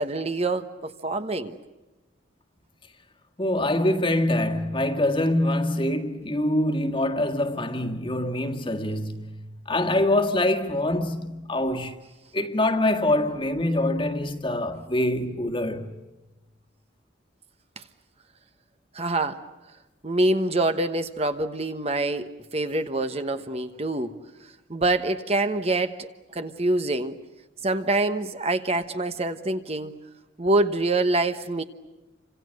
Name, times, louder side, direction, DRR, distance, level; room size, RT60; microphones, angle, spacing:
voice 1, 0.0-1.6 17.8-17.9 18.9-19.4 20.0-24.1 24.7-27.2 27.6-29.9 30.4-31.6, right 2 dB, 30° right, 1.2 m, -25 dB
voice 2, 3.4-11.9 12.3-16.0, left 1 dB, 25° left, 1.8 m, -25 dB
29.0 x 26.0 x 6.5 m
head